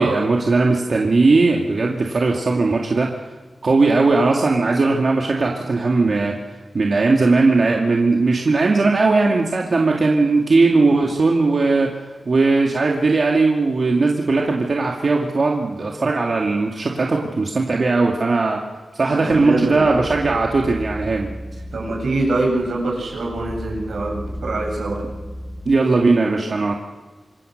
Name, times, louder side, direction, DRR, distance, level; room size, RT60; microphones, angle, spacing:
voice 1, 0.0-3.4 3.6-6.4 6.7-12.0 12.3-18.6 18.9-21.3 25.7-26.7, right 3 dB, 50° right, 0 dB, 2.3 m, -18 dB
voice 2, 19.1-20.0 21.7-25.0, right 2 dB, 85° right, 0 dB, 7.6 m, -24 dB
sound 1, 19.3-25.6, equal, 10° left, 3.7 m, -34 dB
27.0 x 22.0 x 6.6 m, 1.3 s
wide cardioid pair, 125°, 0 cm